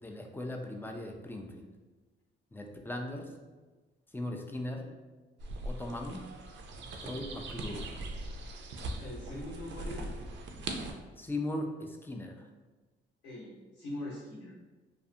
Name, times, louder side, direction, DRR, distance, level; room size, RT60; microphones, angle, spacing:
voice 1, 0.0-1.7 2.5-3.3 4.1-4.9 5.6-6.3 7.0-7.9 11.2-12.4, left 1 dB, 10° left, 2 dB, 0.3 m, -38 dB
sound 1, 5.4-10.9, right 2 dB, 65° right, 0.4 m, -40 dB
voice 2, 9.0-10.1 13.2-14.5, left 1 dB, 80° left, -9 dB, 1.0 m, -42 dB
2.4 x 2.4 x 2.6 m, 1.2 s
cardioid pair, 90°, 20 cm